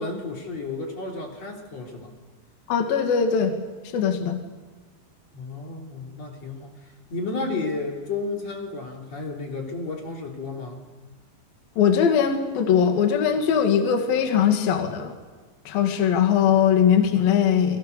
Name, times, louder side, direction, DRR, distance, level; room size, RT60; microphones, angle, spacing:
voice 1, 0.0-2.2 5.3-6.9 7.1-10.8, left 3 dB, 40° left, 0 dB, 4.1 m, -32 dB
voice 2, 2.7-3.6 3.9-4.4 11.8-15.1 15.7-17.8, left 8 dB, 60° left, 4 dB, 3.6 m, -20 dB
29.5 x 24.0 x 6.8 m, 1.4 s
omnidirectional pair, 5.2 m